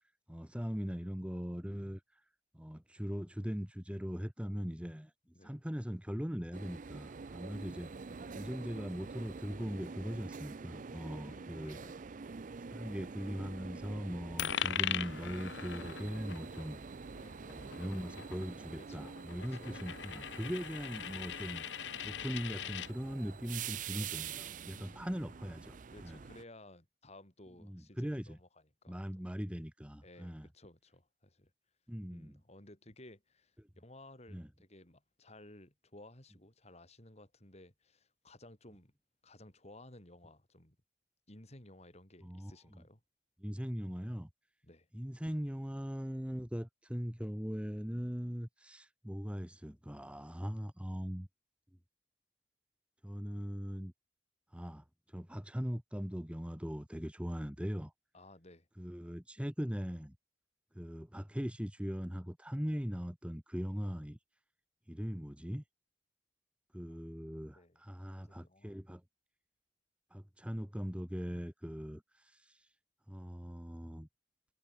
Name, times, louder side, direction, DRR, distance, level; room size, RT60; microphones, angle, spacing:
voice 1, 0.3-2.2 2.5-5.1 5.4-7.9 8.4-11.8 12.7-16.8 17.5-21.6 22.0-26.2 27.6-28.4 28.9-30.5 31.9-32.4 34.3-34.5 42.2-42.8 43.4-44.3 44.9-51.3 53.0-53.9 54.5-57.9 58.8-60.1 60.7-64.2 64.9-65.6 66.7-69.0 70.1-72.7 73.1-74.1, equal, 5° right, 1.4 m, -40 dB
sound 1, 6.5-26.4, right 5 dB, 45° right, 0.5 m, -46 dB
voice 2, 8.1-8.6 11.2-12.0 17.1-17.4 18.8-19.8 20.7-20.8 22.6-23.1 24.7-25.1 25.9-29.3 30.0-31.5 32.1-38.9 39.2-40.8 41.3-43.0 44.6-44.9 58.1-58.7 66.9-67.0 67.5-67.8 68.2-68.8, left 1 dB, 40° left, 5.1 m, -57 dB
Coin (dropping), 14.4-22.9, left 10 dB, 75° left, 0.5 m, -41 dB
head